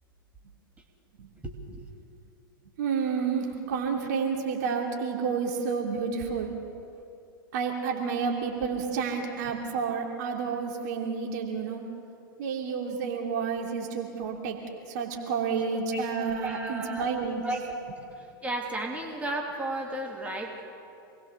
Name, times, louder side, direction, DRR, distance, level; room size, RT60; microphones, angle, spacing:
voice 1, 1.4-1.8 15.9-16.0 16.4-17.0 17.4-17.8 18.4-20.6, right 1 dB, 10° right, 0 dB, 3.2 m, -33 dB
voice 2, 2.8-6.5 7.5-11.8 12.4-14.6 14.9-17.4, right 5 dB, 50° right, 1 dB, 3.1 m, -30 dB
27.5 x 20.5 x 7.0 m, 2.7 s
figure-of-eight pair, 95°, 12 cm